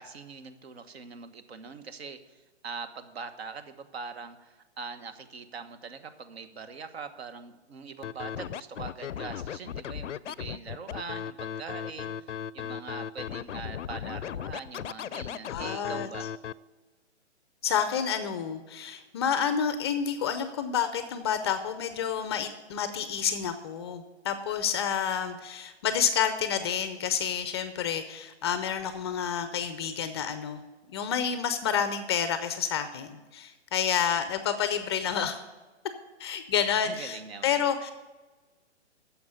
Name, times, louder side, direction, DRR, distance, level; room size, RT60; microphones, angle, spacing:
voice 1, 0.0-16.3 36.8-37.6, right 5 dB, 60° right, 10 dB, 1.3 m, -42 dB
Scratching (performance technique), 8.0-16.5, left 9 dB, 90° left, 0.5 m, -36 dB
voice 2, 15.5-16.1 17.6-30.6 30.9-35.4 36.2-37.9, left 8 dB, 25° left, 10 dB, 0.5 m, -29 dB
9.5 x 7.1 x 9.0 m, 1.2 s
hypercardioid pair, 140°, 35 cm